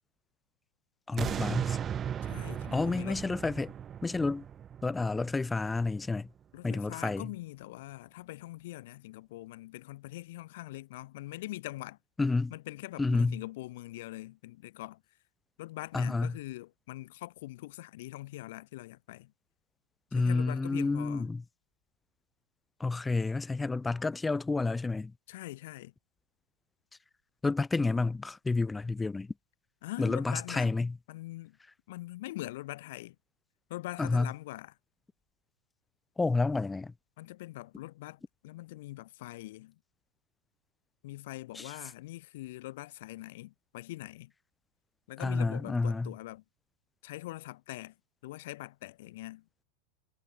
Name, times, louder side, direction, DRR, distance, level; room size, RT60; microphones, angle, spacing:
voice 1, 1.1-1.8 2.7-3.7 4.0-4.5 4.8-6.3 6.6-7.3 12.2-12.5 13.0-13.4 15.9-16.4 20.1-21.4 22.8-25.1 27.4-29.3 30.0-31.0 34.0-34.3 36.2-36.9 41.5-41.7 45.2-46.1, left 3 dB, 10° left, 1.2 m, -30 dB
sound 1, 1.2-6.3 6.7-6.8, right 8 dB, 25° right, 2.0 m, -37 dB
voice 2, 2.2-3.2 6.5-12.0 12.5-15.0 15.6-19.3 20.1-21.3 25.3-25.9 29.8-30.7 31.1-31.6 31.9-33.2 33.7-34.7 37.2-39.8 41.0-44.3 45.1-46.4 47.0-48.0 48.2-49.4, left 18 dB, 55° left, 4.3 m, -43 dB
figure-of-eight pair, 90°, 0 cm